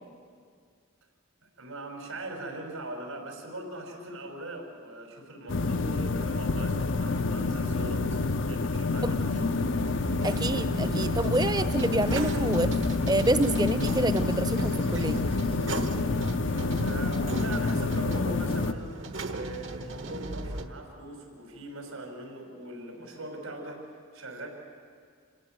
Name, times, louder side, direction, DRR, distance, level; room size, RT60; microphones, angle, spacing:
voice 1, 1.6-9.6 16.5-18.9 19.3-24.5, right 1 dB, 85° right, 2 dB, 5.7 m, -40 dB
sound 1, 5.5-18.7, left 3 dB, 60° left, 0.7 m, -28 dB
sound 2, 9.8-20.6, right 2 dB, 60° right, 1.3 m, -36 dB
voice 2, 10.2-12.7 13.1-15.2, right 1 dB, 20° right, 11 dB, 0.8 m, -27 dB
27.5 x 16.5 x 9.2 m, 2.1 s
head